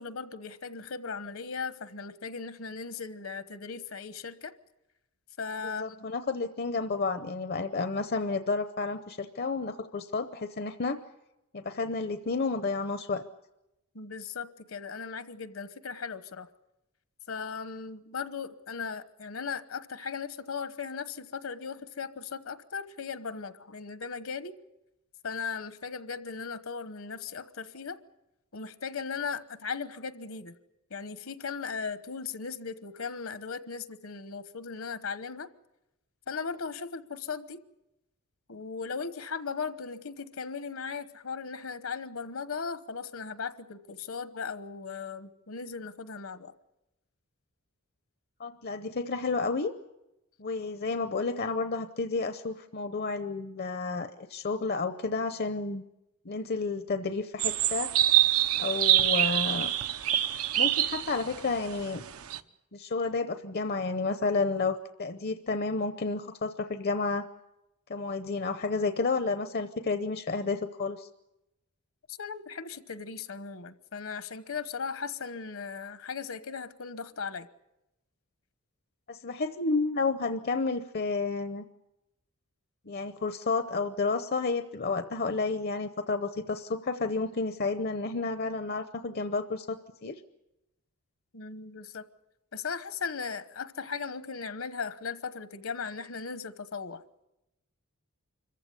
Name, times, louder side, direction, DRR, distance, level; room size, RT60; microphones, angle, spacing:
voice 1, 0.0-4.5 5.4-6.1 13.9-16.5 17.3-24.5 25.2-28.0 28.5-30.5 30.9-35.5 36.3-37.6 38.5-46.5 72.1-77.5 91.3-92.1 92.5-97.2, left 5 dB, 65° left, 13 dB, 1.1 m, -37 dB
voice 2, 5.6-11.0 11.5-13.2 48.4-49.7 50.4-55.8 56.2-57.9 58.6-59.7 60.6-62.0 62.7-67.3 67.9-71.1 79.1-81.6 82.9-90.2, left 3 dB, 45° left, 10 dB, 0.8 m, -31 dB
sound 1, 57.4-62.4, right 12 dB, 80° right, 0.9 m, -25 dB
25.5 x 15.0 x 9.6 m, 0.92 s
head